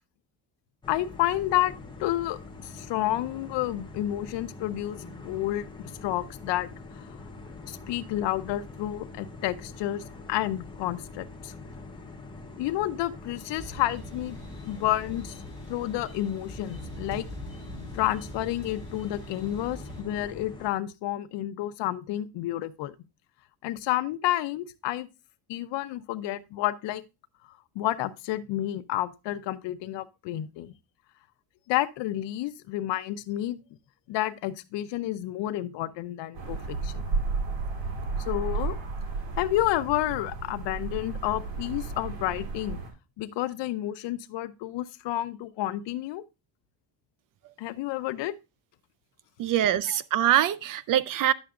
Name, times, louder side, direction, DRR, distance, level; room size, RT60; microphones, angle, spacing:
sound 1, 0.8-20.7, left 3 dB, 10° left, 0.9 m, -44 dB
voice 1, 0.9-1.7 2.0-7.1 7.7-11.5 12.6-14.4 14.7-15.4 15.7-17.3 17.9-22.9 23.6-25.1 25.5-27.0 27.7-30.7 31.7-33.6 34.1-37.2 38.3-38.8 39.4-42.8 43.2-46.2 47.6-48.3 49.9-50.0, left 14 dB, 75° left, 0.7 m, -30 dB
sound 2, 13.5-20.0, equal, 15° right, 3.4 m, -43 dB
sound 3, 36.3-42.9, right 4 dB, 90° right, 3.4 m, -33 dB
voice 2, 49.4-51.3, right 12 dB, 50° right, 0.4 m, -24 dB
10.5 x 6.9 x 2.4 m
cardioid pair, 160°, 43 cm